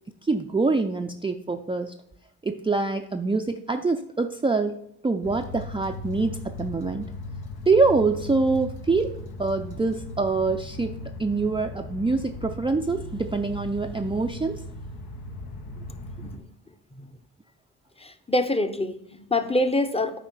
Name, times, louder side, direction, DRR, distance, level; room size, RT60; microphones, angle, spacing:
voice 1, 0.2-1.9 2.4-4.8 5.0-7.1 7.7-9.1 9.4-14.6, right 3 dB, 15° right, 4 dB, 0.5 m, -25 dB
sound 1, 5.2-16.4, left 2 dB, 70° left, 1.1 m, -38 dB
voice 2, 18.0-20.2, left 1 dB, 15° left, 8 dB, 0.8 m, -25 dB
9.0 x 4.3 x 5.6 m, 0.74 s
cardioid pair, 60°, 39 cm